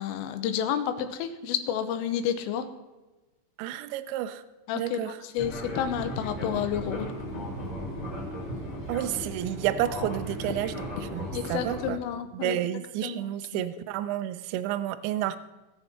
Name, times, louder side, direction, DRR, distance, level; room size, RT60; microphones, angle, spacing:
voice 1, 0.0-2.7 4.7-7.1 11.3-12.6 13.0-13.6, left 9 dB, 85° left, 9 dB, 3.3 m, -30 dB
voice 2, 3.6-4.4 4.8-5.1 8.9-12.0 12.3-15.4, right 12 dB, 90° right, 10 dB, 2.5 m, -30 dB
Fixed-wing aircraft airplane, 5.4-11.9, equal, 35° left, 1.8 m, -36 dB
18.5 x 7.1 x 4.3 m, 1.1 s
omnidirectional pair, 5.9 m